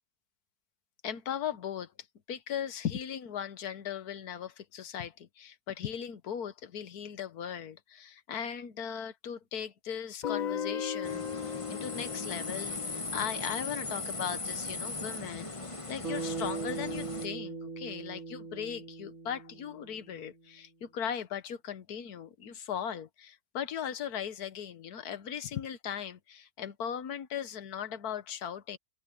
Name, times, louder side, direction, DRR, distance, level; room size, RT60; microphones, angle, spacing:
voice 1, 1.0-1.9 2.3-28.8, left 8 dB, 80° left, 1.6 m, -38 dB
Guitar, 10.2-15.1, left 8 dB, 60° left, 0.4 m, -38 dB
sound 1, 11.0-17.3, left 3 dB, 20° left, 1.4 m, -38 dB
Bass guitar, 16.0-20.4, right 4 dB, 65° right, 4.1 m, -40 dB
omnidirectional pair, 1.6 m